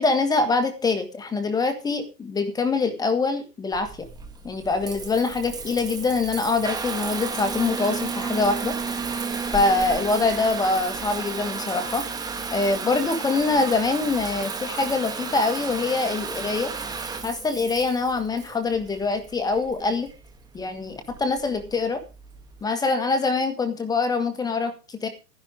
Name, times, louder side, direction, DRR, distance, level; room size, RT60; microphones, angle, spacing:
voice 1, 0.0-4.1 4.4-8.7 9.5-12.1 12.5-16.7 17.2-20.1 20.5-22.0 22.6-25.1, left 3 dB, 10° left, 8 dB, 1.7 m, -24 dB
Water tap faucet / Bathtub (filling or washing) / Trickle dribble, 3.7-22.6, right 5 dB, 10° right, 1.2 m, -33 dB
11.5 x 11.0 x 4.8 m, 0.30 s
hypercardioid pair, 150°, 48 cm